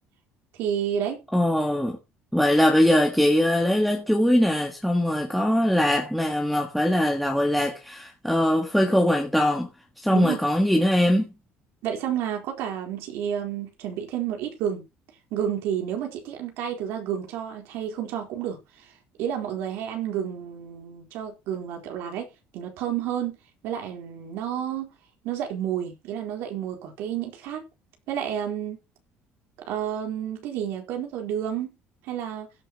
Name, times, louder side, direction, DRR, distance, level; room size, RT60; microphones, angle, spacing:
voice 1, 0.6-1.2 10.1-10.4 11.8-14.9 15.3-18.9 19.2-22.3 22.5-23.4 23.6-24.9 25.2-27.6 28.1-28.8 29.7-31.7 32.0-32.5, right 9 dB, 65° right, 4.0 m, -30 dB
voice 2, 1.3-2.0 2.3-9.7 10.0-11.3, left 1 dB, ahead, 1.7 m, -21 dB
16.5 x 9.9 x 3.0 m
cardioid pair, 175°, 4 cm